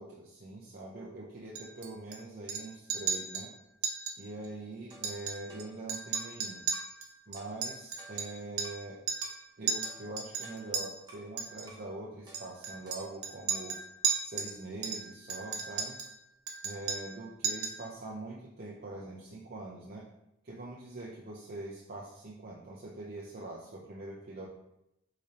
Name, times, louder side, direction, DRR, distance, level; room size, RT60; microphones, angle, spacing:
voice 1, 0.0-3.5 4.2-6.7 7.3-9.0 9.6-13.8 14.2-16.0 16.6-20.1 20.4-24.5, right 2 dB, 45° right, -4 dB, 0.6 m, -43 dB
Chink clink, 1.6-2.2 2.5-2.6 2.9-3.5 3.8-4.2 4.4-4.5 4.9-5.6 5.9-8.8 9.1-9.4 9.7-10.8 11.4-11.7 12.3-14.5 14.8-16.1 16.5-17.2 17.4-17.8, right 6 dB, 90° right, 0.7 m, -35 dB
sound 1, 4.9-6.4 6.7-7.0 7.4-8.9 9.2-9.5 9.8-11.3 11.7-11.9 12.3-13.8 14.0-14.3, right 1 dB, 20° right, 0.9 m, -55 dB
3.8 x 3.3 x 4.1 m, 0.84 s
head